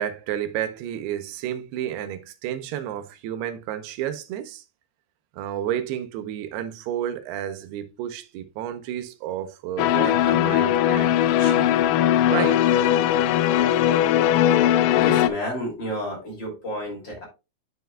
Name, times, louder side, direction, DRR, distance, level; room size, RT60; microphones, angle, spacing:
voice 1, 0.0-4.6 5.4-11.7 12.3-12.6, right 11 dB, 90° right, 2.7 m, -31 dB
sound 1, 9.8-15.3, left 11 dB, 80° left, 2.3 m, -19 dB
voice 2, 14.9-17.2, left 1 dB, 30° left, 2.9 m, -30 dB
9.3 x 6.7 x 2.2 m
omnidirectional pair, 4.6 m